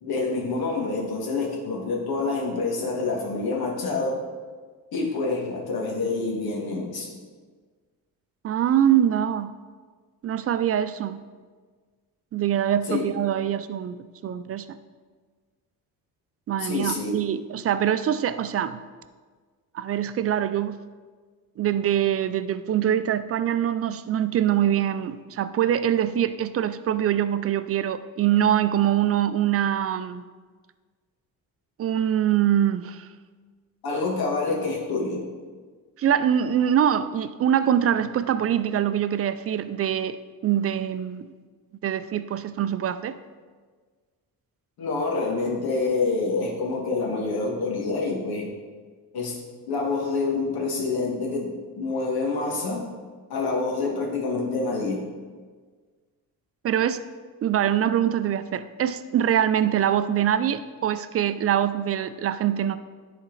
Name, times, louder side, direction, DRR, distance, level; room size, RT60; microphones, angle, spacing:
voice 1, 0.0-4.2 4.9-7.1 12.9-13.0 16.6-17.1 33.8-35.3 44.8-48.5 49.1-49.4 49.7-52.9 53.3-55.1, left 3 dB, 75° left, -1 dB, 1.7 m, -27 dB
voice 2, 8.4-9.5 10.2-11.2 12.3-14.8 16.5-18.8 19.7-20.8 21.6-30.2 31.8-33.1 36.0-41.3 41.8-43.2 56.6-57.0 57.4-62.8, right 10 dB, 40° right, 13 dB, 0.4 m, -24 dB
10.0 x 4.2 x 3.9 m, 1.5 s
cardioid pair, 100°, 37 cm